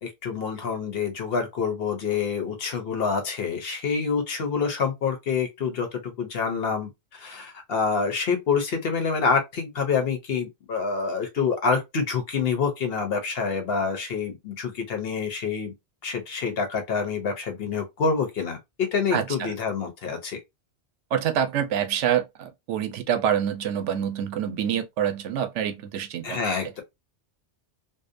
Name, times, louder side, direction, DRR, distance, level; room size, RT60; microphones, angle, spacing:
voice 1, 0.0-15.7 16.0-20.4 26.2-26.8, left 5 dB, 60° left, 0.9 m, -27 dB
voice 2, 19.1-19.5 21.1-26.4, right 9 dB, 90° right, 0.9 m, -26 dB
2.6 x 2.0 x 2.5 m
omnidirectional pair, 1.2 m